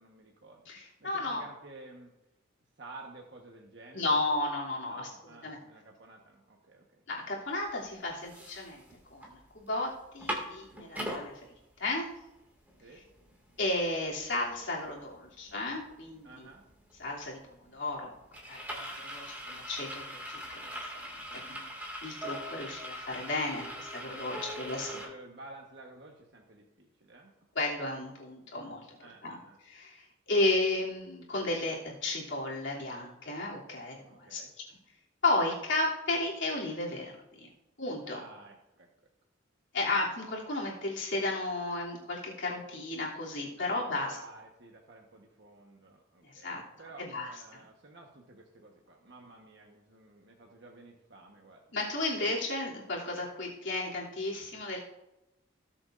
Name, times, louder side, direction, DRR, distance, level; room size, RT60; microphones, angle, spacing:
voice 1, 0.0-0.6 1.0-2.1 2.8-4.2 4.8-7.0 12.8-13.0 16.2-16.6 21.3-21.6 24.3-27.3 29.0-29.6 34.0-34.5 38.0-38.9 43.6-51.6, right 2 dB, 60° right, 0 dB, 1.2 m, -52 dB
voice 2, 0.7-1.4 3.9-5.1 5.4-5.6 7.1-8.8 9.1-11.4 11.8-12.1 13.6-16.5 17.0-18.1 18.5-25.0 27.5-34.8 35.2-37.5 37.8-38.2 39.7-44.2 46.2-46.6 47.0-47.3 51.7-54.8, left 2 dB, 70° left, -4 dB, 2.8 m, -33 dB
sound 1, 7.6-7.7 8.1-9.3 9.7-9.8 10.0-11.2 11.8-11.9 12.2-25.1, equal, 10° right, 2.1 m, -41 dB
18.5 x 7.1 x 2.5 m, 0.93 s
head